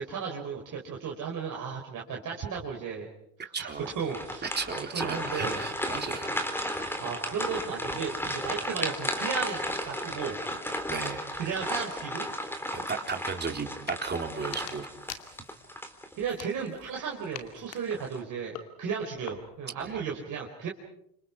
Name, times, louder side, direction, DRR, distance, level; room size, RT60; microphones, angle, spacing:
voice 1, 0.0-3.1 3.4-3.7 4.0-4.6 4.9-5.6 7.0-9.6 9.9-10.4 11.4-12.3 16.2-20.7, right 6 dB, 40° right, -1 dB, 4.4 m, -34 dB
voice 2, 3.5-3.9 4.4-6.3 8.2-8.3 10.9-11.3 12.9-14.9 19.8-20.0, right 5 dB, 20° right, 4 dB, 3.6 m, -35 dB
sound 1, 3.8-16.5 16.9-17.1 17.7-18.2, equal, 5° left, 3.6 m, -34 dB
sound 2, 13.7-14.0 14.4-15.7 16.2-16.9 17.3-19.7, left 10 dB, 75° left, 2.6 m, -45 dB
29.5 x 27.5 x 4.9 m, 0.74 s
hypercardioid pair, 100°, 47 cm